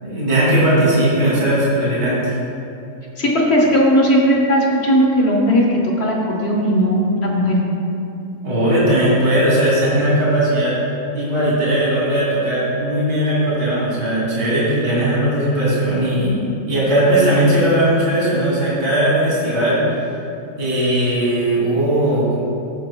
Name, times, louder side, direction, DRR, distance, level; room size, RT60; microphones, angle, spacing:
voice 1, 0.0-2.3 8.4-10.8 11.1-19.8 20.6-22.4, right 1 dB, 35° right, -8 dB, 2.6 m, -18 dB
voice 2, 3.2-7.6, equal, 45° left, -1 dB, 1.4 m, -16 dB
14.5 x 8.4 x 2.2 m, 2.7 s
omnidirectional pair, 1.6 m